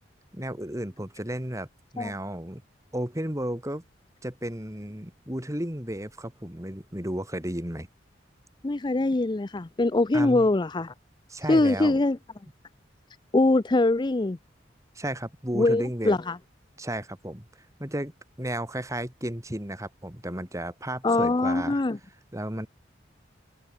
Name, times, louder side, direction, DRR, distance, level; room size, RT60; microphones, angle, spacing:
voice 1, 0.3-1.7 1.9-2.6 2.9-3.8 4.2-7.9 10.1-10.5 11.3-12.0 15.0-16.2 16.8-17.5 17.8-18.1 18.4-21.8 22.3-22.7, right 1 dB, 15° right, 3.6 m, -33 dB
voice 2, 8.6-10.9 11.5-12.2 13.3-14.4 15.5-16.4 21.0-22.0, left 2 dB, 25° left, 0.5 m, -23 dB
head